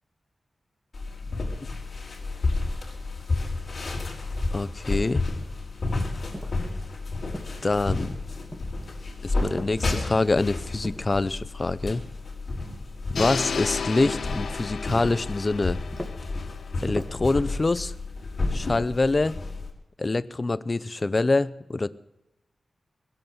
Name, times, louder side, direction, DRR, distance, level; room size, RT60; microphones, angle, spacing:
sound 1, 0.9-19.7, left 3 dB, 50° left, 3.9 m, -31 dB
voice 1, 4.5-5.2 7.6-8.1 9.2-12.0 13.1-15.8 16.8-17.9 18.5-19.4 20.0-21.9, left 3 dB, 35° left, 17 dB, 0.6 m, -25 dB
sound 2, 6.3-6.7 7.3-8.0 8.5-9.0 9.6-10.2 10.8-11.5 13.2-13.5 14.1-14.3 14.9-15.3 15.9-16.3 16.9-17.3, equal, 5° right, 2.1 m, -39 dB
sound 3, 13.1-17.2, left 5 dB, 80° left, 0.4 m, -34 dB
21.5 x 8.0 x 7.9 m, 0.96 s
wide cardioid pair, 110°, 0 cm